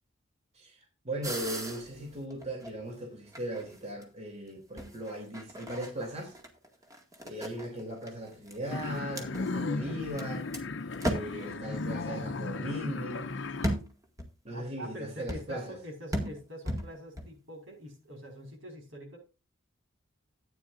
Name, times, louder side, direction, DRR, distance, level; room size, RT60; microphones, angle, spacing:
voice 1, 0.5-6.3 7.2-10.5 11.0-13.3 14.4-15.8, equal, 35° right, 3.0 m, -38 dB
sound 1, 1.2-3.0 3.3-4.0 4.8-10.2 10.5-10.6 10.9-11.5 13.6-14.3 15.3-15.6 16.1-17.3, equal, 20° right, 1.9 m, -36 dB
sound 2, 8.7-13.7, left 3 dB, 65° left, 0.7 m, -35 dB
voice 2, 14.5-19.2, equal, 80° right, 5.0 m, -44 dB
13.5 x 9.4 x 2.5 m
head